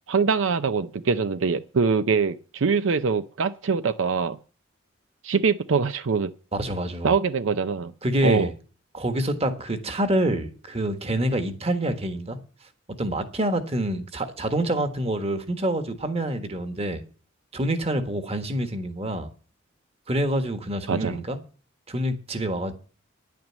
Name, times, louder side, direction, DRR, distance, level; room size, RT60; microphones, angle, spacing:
voice 1, 0.1-4.4 5.2-6.3 7.0-7.9 8.2-8.5 20.9-21.2, right 5 dB, 70° right, 0.5 m, -23 dB
voice 2, 6.5-7.1 8.0-8.5 8.9-12.4 13.0-17.0 17.5-19.3 20.1-21.4 21.9-22.7, right 1 dB, 30° right, 1.5 m, -26 dB
10.5 x 9.2 x 7.3 m
head